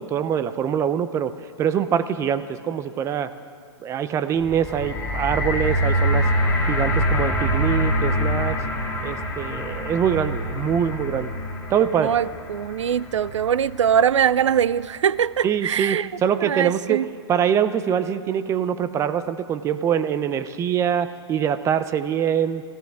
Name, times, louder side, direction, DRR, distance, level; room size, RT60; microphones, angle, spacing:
voice 1, 0.0-3.3 3.8-6.3 6.7-8.6 9.0-11.3 11.7-12.2 15.4-17.0 17.3-22.6, right 8 dB, 20° right, 0.6 m, -24 dB
sound 1, 4.4-14.6 15.3-15.4, equal, 15° left, 2.6 m, -25 dB
voice 2, 12.0-16.1 16.4-17.0, right 8 dB, 90° right, 0.4 m, -22 dB
27.5 x 14.5 x 3.5 m
hypercardioid pair, 135°, 15 cm